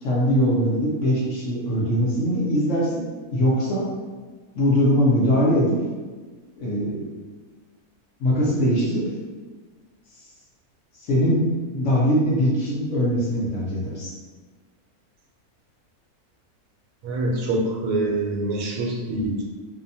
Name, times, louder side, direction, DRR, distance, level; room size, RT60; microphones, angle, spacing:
voice 1, 0.0-3.8 4.6-5.8 6.6-7.1 8.2-9.0 11.0-14.1, equal, 65° left, -6 dB, 0.9 m, -21 dB
voice 2, 17.0-19.4, right 2 dB, 75° right, -2 dB, 1.0 m, -25 dB
2.7 x 2.1 x 2.6 m, 1.4 s
omnidirectional pair, 1.6 m